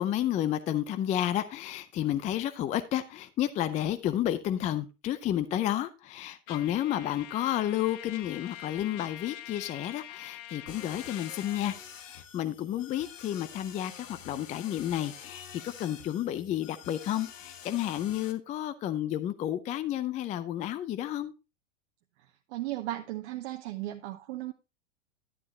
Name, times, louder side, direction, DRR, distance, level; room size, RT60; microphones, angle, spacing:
voice 1, 0.0-21.3, left 12 dB, 20° left, 0.4 m, -31 dB
Trumpet, 6.5-11.8, left 13 dB, 50° left, 0.9 m, -45 dB
sound 1, 10.7-18.3, left 8 dB, 90° left, 1.2 m, -47 dB
voice 2, 22.2-24.5, right 15 dB, 65° right, 0.9 m, -36 dB
11.0 x 7.7 x 2.8 m
hypercardioid pair, 120°, 37 cm